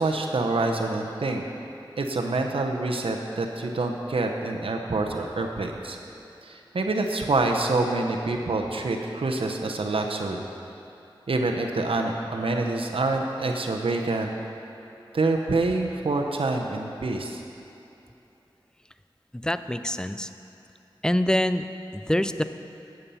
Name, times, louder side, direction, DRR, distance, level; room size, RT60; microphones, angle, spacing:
voice 1, 0.0-1.4 2.0-6.0 6.4-10.4 11.3-14.3 15.1-17.4, right 2 dB, 85° right, 2 dB, 0.8 m, -26 dB
voice 2, 19.3-20.3 21.0-21.7 21.9-22.4, left 1 dB, 10° left, 11 dB, 0.5 m, -25 dB
12.5 x 8.9 x 5.6 m, 2.8 s
wide cardioid pair, 45°, 9 cm